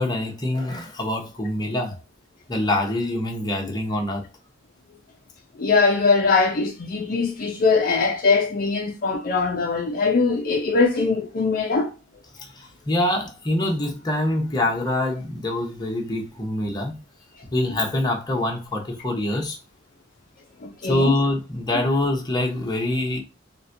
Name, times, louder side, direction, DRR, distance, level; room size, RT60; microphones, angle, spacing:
voice 1, 0.0-2.0 2.5-4.2 12.4-17.0 17.5-19.6 20.8-23.2, left 1 dB, 20° left, 0.9 m, -25 dB
voice 2, 5.6-11.9 20.8-21.1, left 4 dB, 50° left, 0.4 m, -21 dB
4.0 x 2.2 x 2.6 m
head